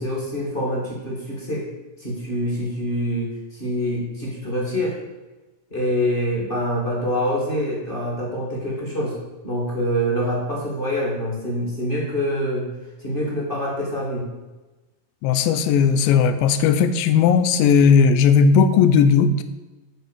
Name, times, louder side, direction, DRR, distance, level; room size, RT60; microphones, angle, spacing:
voice 1, 0.0-1.7 2.0-5.0 5.7-9.2 9.4-12.7 13.0-14.3, equal, 20° left, -4 dB, 1.5 m, -25 dB
voice 2, 15.2-19.4, left 6 dB, 90° left, 11 dB, 2.4 m, -16 dB
9.3 x 4.2 x 6.6 m, 1.2 s
omnidirectional pair, 4.0 m